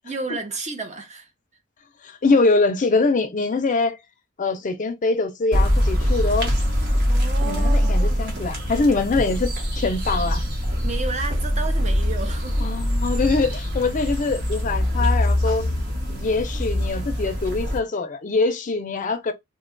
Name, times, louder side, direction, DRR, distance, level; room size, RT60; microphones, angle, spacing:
voice 1, 0.0-1.3 7.1-8.3 10.8-12.7, right 3 dB, 35° right, 0.6 m, -32 dB
voice 2, 2.0-4.0 4.4-6.5 7.4-10.4 12.6-15.7 16.1-19.3, left 3 dB, 40° left, 0.5 m, -23 dB
sound 1, 5.5-17.8, equal, 55° right, 1.0 m, -23 dB
2.7 x 2.2 x 3.7 m
head